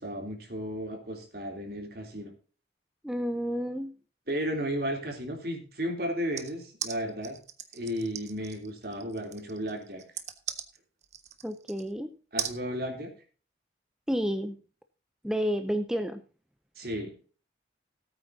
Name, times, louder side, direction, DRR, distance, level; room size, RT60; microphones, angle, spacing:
voice 1, 0.0-2.3 4.3-7.4 7.7-10.0 12.3-13.1 16.7-17.1, equal, 55° right, 2 dB, 3.4 m, -34 dB
voice 2, 3.0-3.9 11.4-12.1 14.1-14.6 15.2-16.2, equal, 5° right, 8 dB, 0.6 m, -30 dB
sound 1, 6.4-11.9 12.4-12.6, right 9 dB, 40° right, 1.1 m, -38 dB
18.0 x 8.9 x 2.8 m, 0.36 s
head